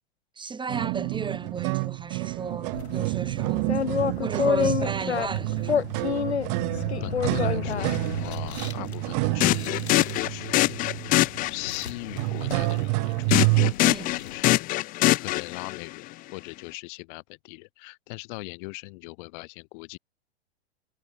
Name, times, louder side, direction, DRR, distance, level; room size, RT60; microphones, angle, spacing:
voice 1, 0.4-5.9 13.8-14.2, right 5 dB, 15° right, 6.5 m, -35 dB
sound 1, 0.7-13.7, right 32 dB, 40° right, 0.7 m, -28 dB
sound 2, 2.7-14.4, left 7 dB, 80° left, 6.4 m, -31 dB
voice 2, 6.7-11.0 11.5-13.3 14.2-14.8 15.1-20.0, left 29 dB, 50° left, 3.0 m, -40 dB
sound 3, 7.8-8.0 9.4-11.9 13.3-15.9, left 19 dB, 25° left, 0.5 m, -24 dB
hypercardioid pair, 105°, 33 cm